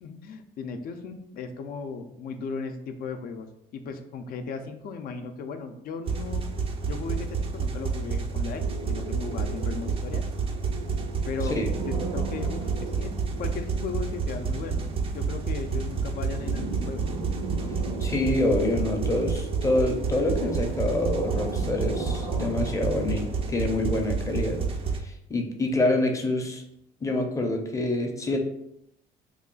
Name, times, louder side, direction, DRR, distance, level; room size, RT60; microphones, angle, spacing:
voice 1, 0.0-3.5 3.7-6.4 6.9-10.2 11.3-13.1 13.4-17.1, left 5 dB, 60° left, 7 dB, 0.5 m, -36 dB
sound 1, 6.1-25.0, right 5 dB, 35° right, 0.4 m, -30 dB
sound 2, 8.6-24.7, right 3 dB, 85° right, 0.8 m, -38 dB
voice 2, 18.0-24.6 25.0-26.6 27.0-28.4, left 2 dB, 20° left, 2 dB, 0.6 m, -26 dB
3.1 x 2.4 x 3.8 m, 0.78 s
cardioid pair, 110°, 17 cm